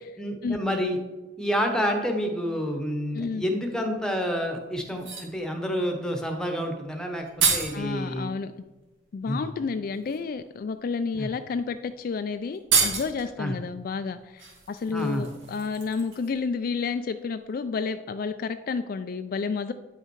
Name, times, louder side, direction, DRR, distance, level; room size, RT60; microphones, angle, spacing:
voice 1, 0.2-1.0 1.4-8.3 9.3-9.4 11.2-11.3 13.4-13.5 14.9-15.2, equal, 5° left, 3 dB, 1.0 m, -29 dB
voice 2, 3.1-3.4 7.7-8.5 9.1-19.7, left 5 dB, 50° left, 10 dB, 0.3 m, -30 dB
sound 1, 4.0-4.1 4.9-5.4 6.8-6.9 7.1-7.8 9.2-9.3 9.9-10.2 11.1-11.2 11.5-11.7 11.9-12.0 12.5-13.3 14.4-16.4 16.7-16.8, right 5 dB, 90° right, 2.0 m, -28 dB
9.4 x 5.6 x 4.6 m, 1.2 s
head